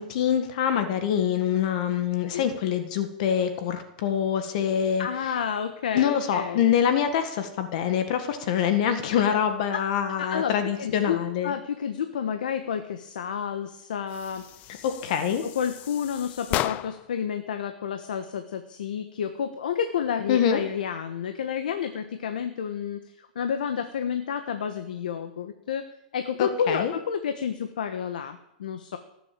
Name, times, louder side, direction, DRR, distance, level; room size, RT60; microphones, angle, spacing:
voice 1, 0.0-5.3 5.9-11.5 14.8-15.4 20.3-20.6 26.4-26.9, left 9 dB, 55° left, 7 dB, 1.7 m, -25 dB
voice 2, 5.0-6.6 10.2-10.5 10.8-11.2 11.4-14.7 15.4-23.0 23.3-25.9 26.1-29.0, left 7 dB, 85° left, 7 dB, 1.4 m, -30 dB
sound 1, 14.1-17.2, left 15 dB, 35° left, 0.5 m, -34 dB
18.0 x 8.0 x 7.6 m, 0.83 s
hypercardioid pair, 140°, 4 cm